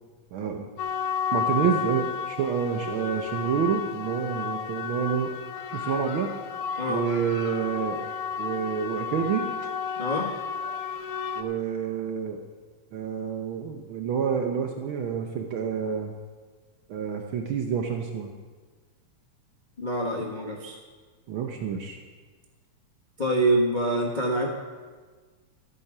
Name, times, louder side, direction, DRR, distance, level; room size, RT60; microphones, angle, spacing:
voice 1, 0.3-0.7 1.3-5.4 5.7-6.3 6.9-8.1 8.4-9.5 11.4-12.4 12.9-16.1 16.9-18.3 21.3-22.0, right 7 dB, 75° right, 3 dB, 1.2 m, -28 dB
sound 1, 0.8-11.4, left 7 dB, 85° left, 2.5 m, -32 dB
voice 2, 10.0-10.3 19.8-20.8 23.2-24.5, right 1 dB, 55° left, -2 dB, 0.5 m, -25 dB
13.5 x 9.9 x 6.0 m, 1.4 s
omnidirectional pair, 3.4 m